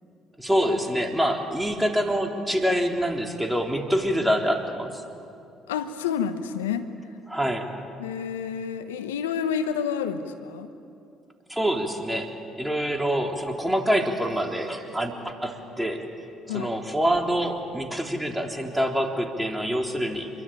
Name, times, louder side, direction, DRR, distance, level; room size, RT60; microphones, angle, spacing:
voice 1, 0.4-5.0 7.3-7.7 11.5-16.1 16.5-20.3, equal, 5° right, 3 dB, 3.7 m, -26 dB
voice 2, 5.7-6.9 8.0-10.7 16.5-16.7, left 7 dB, 90° left, 10 dB, 1.0 m, -29 dB
27.0 x 23.5 x 9.0 m, 2.6 s
hypercardioid pair, 55°, 0 cm